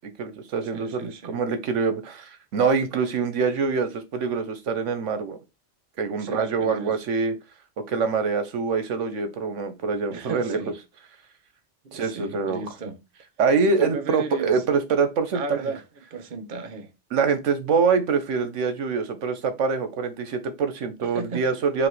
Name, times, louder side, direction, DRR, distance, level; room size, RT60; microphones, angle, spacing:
voice 1, 0.2-5.4 6.0-7.3 7.9-10.6 11.9-12.6 13.4-15.6 17.1-21.9, right 5 dB, 75° right, 1.0 m, -25 dB
voice 2, 0.7-1.4 6.2-7.0 10.1-10.8 11.8-13.0 13.8-14.6 15.3-16.9 21.1-21.5, right 4 dB, 50° right, 0.9 m, -34 dB
5.0 x 3.1 x 3.1 m
omnidirectional pair, 1.3 m